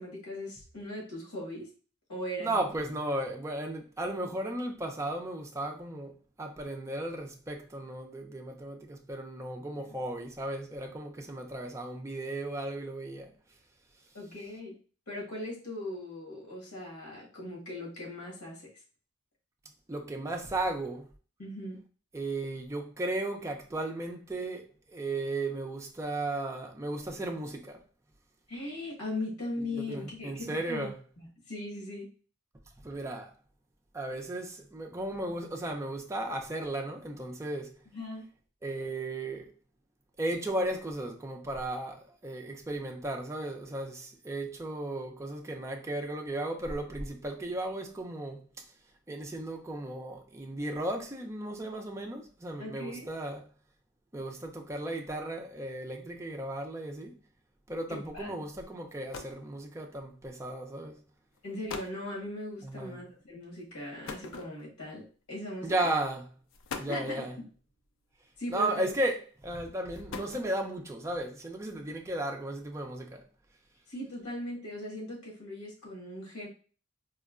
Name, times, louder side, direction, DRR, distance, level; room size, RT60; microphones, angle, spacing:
voice 1, 0.0-1.7 2.1-2.6 14.1-14.7 15.1-18.6 21.4-21.8 28.5-30.9 31.2-32.1 37.8-38.2 52.6-53.1 57.9-58.3 61.4-66.0 66.9-67.2 68.4-68.9 73.9-76.5, left 1 dB, 90° left, 1.4 m, -39 dB
voice 2, 2.4-13.3 19.9-21.1 22.1-27.8 29.7-31.0 32.8-33.3 33.9-37.8 38.6-39.5 40.2-48.5 49.1-53.4 54.1-57.1 57.7-61.0 62.6-63.0 65.6-66.3 66.8-67.4 68.5-73.2, right 1 dB, 15° right, 0.4 m, -35 dB
sound 1, 58.9-59.5 60.5-60.7 61.3-61.4 61.7-62.0 64.1-64.9 65.9-66.0 66.5-67.2 68.4-68.9 69.8-70.8, left 4 dB, 60° left, 0.4 m, -42 dB
4.3 x 2.1 x 2.4 m
head